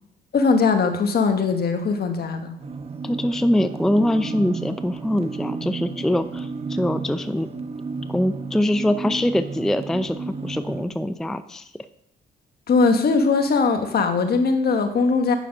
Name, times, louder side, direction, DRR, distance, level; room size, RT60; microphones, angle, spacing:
voice 1, 0.3-2.5 12.7-15.4, left 4 dB, 55° left, 7 dB, 1.3 m, -20 dB
sound 1, 2.6-10.9, right 4 dB, 30° right, 0.9 m, -33 dB
voice 2, 3.0-7.5 8.1-11.7, left 1 dB, ahead, 11 dB, 0.4 m, -23 dB
9.2 x 5.8 x 5.4 m, 0.75 s
cardioid pair, 90°, 20 cm